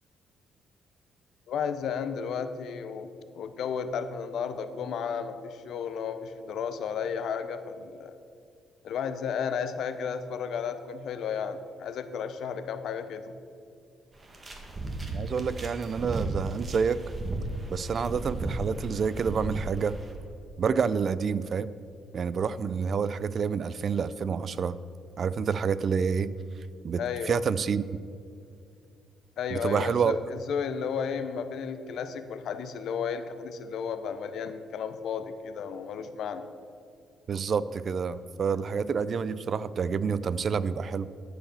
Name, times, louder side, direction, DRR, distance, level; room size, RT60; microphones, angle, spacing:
voice 1, 1.5-8.2 8.8-13.2 27.0-27.4 29.4-36.5, left 6 dB, 70° left, 10 dB, 0.6 m, -33 dB
sound 1, 14.2-20.1, right 2 dB, 30° right, 1.5 m, -35 dB
voice 2, 15.1-17.0 17.7-20.0 20.6-21.7 22.1-24.8 25.2-26.3 26.8-27.8 29.5-30.2 37.3-41.1, right 6 dB, 50° right, 16 dB, 0.3 m, -28 dB
12.0 x 4.8 x 6.9 m, 2.3 s
cardioid pair, 90°, 0 cm